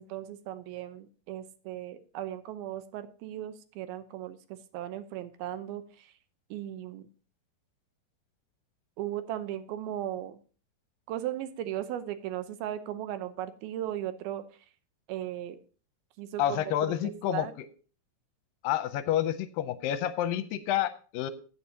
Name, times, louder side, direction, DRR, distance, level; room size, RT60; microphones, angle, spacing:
voice 1, 0.0-6.1 6.5-7.1 9.0-10.4 11.1-14.4 15.1-15.6 16.2-17.5, right 12 dB, 90° right, 11 dB, 2.7 m, -37 dB
voice 2, 16.4-17.5 18.6-21.3, left 11 dB, 80° left, 12 dB, 2.2 m, -29 dB
15.0 x 8.4 x 2.8 m, 0.37 s
omnidirectional pair, 4.3 m